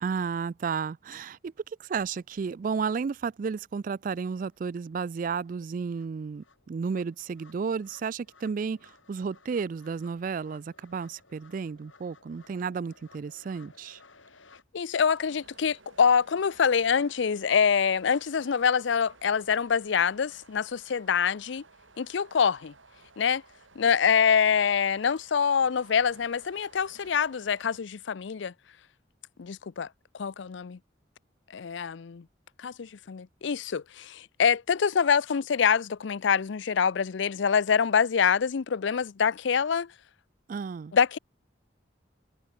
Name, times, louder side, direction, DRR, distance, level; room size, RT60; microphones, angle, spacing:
voice 1, 0.0-1.5 1.8-14.0 40.5-40.9, right 5 dB, 45° right, 0.3 m, -32 dB
sound 1, 4.5-4.6 5.0-14.6, left 4 dB, 90° left, 6.4 m, -59 dB
voice 2, 14.7-21.6 22.0-22.7 23.2-23.4 23.8-28.5 29.4-29.9 30.1-30.8 31.5-32.2 32.6-39.9 40.9-41.2, left 6 dB, 70° left, 0.5 m, -25 dB
sound 2, 15.1-27.8, right 3 dB, 90° right, 7.6 m, -56 dB
head